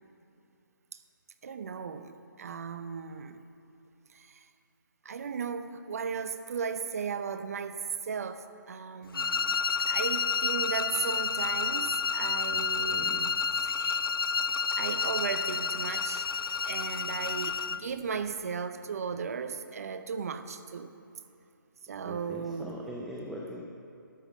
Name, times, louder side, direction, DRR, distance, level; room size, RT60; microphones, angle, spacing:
voice 1, 1.4-3.4 4.1-4.5 5.0-14.1 14.7-16.3 16.6-20.9 21.9-22.8, right 6 dB, 45° right, 10 dB, 0.7 m, -36 dB
sound 1, 9.1-17.9, left 5 dB, 90° left, 0.4 m, -30 dB
voice 2, 12.5-13.2 22.0-23.6, equal, ahead, -3 dB, 0.4 m, -42 dB
12.5 x 9.3 x 6.2 m, 2.6 s
hypercardioid pair, 160°, 12 cm